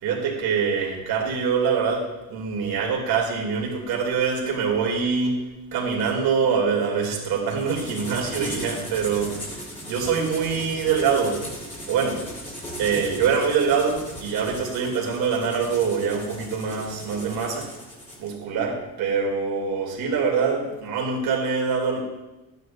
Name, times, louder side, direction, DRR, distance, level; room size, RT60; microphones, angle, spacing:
voice 1, 0.0-5.4 5.7-11.4 11.9-12.2 12.8-17.7 18.2-22.0, right 6 dB, 70° right, -1 dB, 2.6 m, -24 dB
sound 1, 7.6-18.3, equal, 20° left, 3.0 m, -37 dB
11.5 x 9.3 x 2.5 m, 1.1 s
cardioid pair, 110°, 38 cm